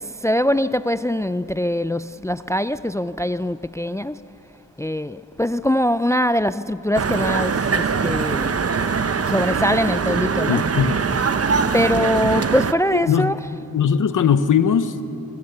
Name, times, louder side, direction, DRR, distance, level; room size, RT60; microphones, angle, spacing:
voice 1, 0.0-4.2 4.8-8.6 8.9-9.0 9.3-10.6 11.7-13.4, equal, 10° left, 0.4 m, -22 dB
sound 1, 6.9-12.7, right 5 dB, 50° right, 0.9 m, -22 dB
voice 2, 10.5-11.0 12.9-13.3 13.7-15.0, left 7 dB, 85° left, 1.0 m, -19 dB
26.5 x 20.5 x 6.9 m
cardioid pair, 60°, 31 cm